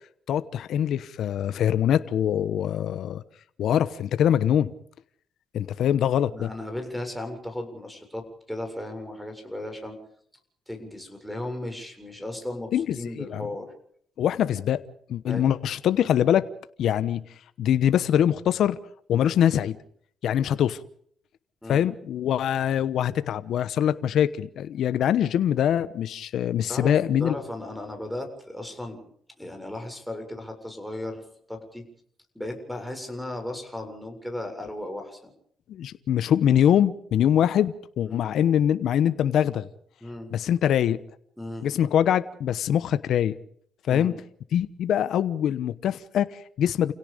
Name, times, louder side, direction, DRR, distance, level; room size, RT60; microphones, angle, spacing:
voice 1, 0.3-3.2 3.6-4.7 5.5-6.5 12.7-13.4 14.2-14.8 15.1-16.5 16.8-17.2 17.6-18.8 19.1-19.8 20.2-20.8 21.7-27.4 35.7-39.7 40.3-41.0 41.6-43.3 43.9-44.1 44.5-46.9, left 10 dB, 70° left, 13 dB, 1.1 m, -23 dB
voice 2, 6.3-10.0 10.7-13.7 15.3-15.5 21.6-21.9 26.7-26.9 27.2-29.1 29.4-31.2 31.5-31.9 32.3-35.3 38.0-38.2 40.0-40.3 41.4-41.7 43.9-44.2, left 1 dB, ahead, 3 dB, 7.2 m, -36 dB
29.5 x 17.0 x 5.3 m, 0.64 s
cardioid pair, 90°, 0 cm